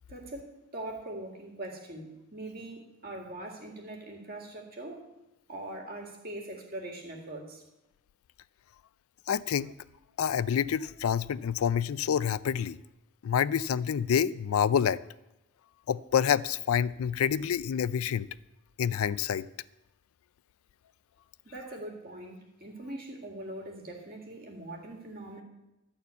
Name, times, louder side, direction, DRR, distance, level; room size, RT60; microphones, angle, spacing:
voice 1, 0.1-5.1 5.5-7.6 21.4-25.4, right 1 dB, 45° right, 0 dB, 2.0 m, -42 dB
voice 2, 9.3-9.7 10.2-12.8 13.2-15.0 15.9-18.3 18.8-19.4, left 8 dB, 85° left, 17 dB, 0.4 m, -27 dB
13.0 x 4.3 x 8.2 m, 0.95 s
head